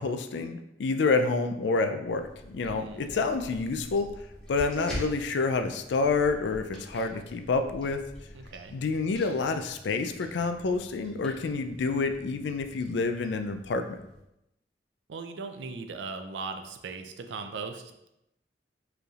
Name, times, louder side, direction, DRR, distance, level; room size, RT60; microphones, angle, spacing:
voice 1, 0.0-4.1 4.5-8.0 8.7-14.0, left 4 dB, 80° left, 7 dB, 0.4 m, -28 dB
sound 1, 2.1-14.2, equal, 5° left, 1.0 m, -45 dB
voice 2, 2.7-3.1 8.3-8.7 15.1-18.1, right 4 dB, 85° right, 6 dB, 0.4 m, -39 dB
4.8 x 3.3 x 2.4 m, 0.86 s
head